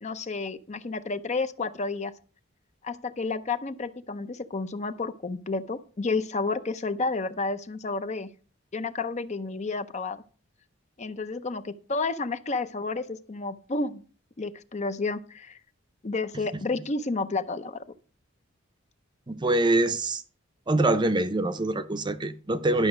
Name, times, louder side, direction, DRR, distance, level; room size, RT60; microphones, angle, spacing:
voice 1, 0.0-2.1 2.8-8.3 8.7-10.2 11.0-14.0 14.4-15.6 16.0-17.8, left 3 dB, 35° left, 0.6 m, -31 dB
voice 2, 19.3-20.2 20.7-22.9, right 2 dB, 20° right, 0.6 m, -24 dB
11.5 x 6.0 x 6.2 m
head